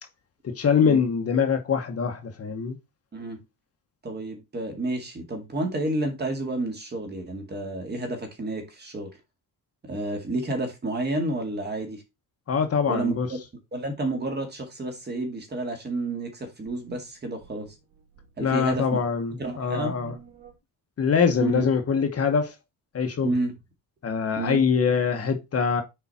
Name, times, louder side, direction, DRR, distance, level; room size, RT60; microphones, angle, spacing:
voice 1, 0.4-2.8 12.5-13.3 18.4-20.1 21.0-22.5 22.9-23.3 24.0-25.8, left 6 dB, 40° left, 1.2 m, -23 dB
voice 2, 3.1-3.4 4.0-9.1 9.8-12.0 12.9-13.1 13.7-17.7 18.4-19.0 19.4-19.9 21.4-21.6 23.2-23.5 24.4-24.6, right 2 dB, 25° right, 2.1 m, -30 dB
sound 1, 16.7-20.6, right 10 dB, 55° right, 3.8 m, -50 dB
6.9 x 4.8 x 4.2 m
cardioid pair, 160°, 38 cm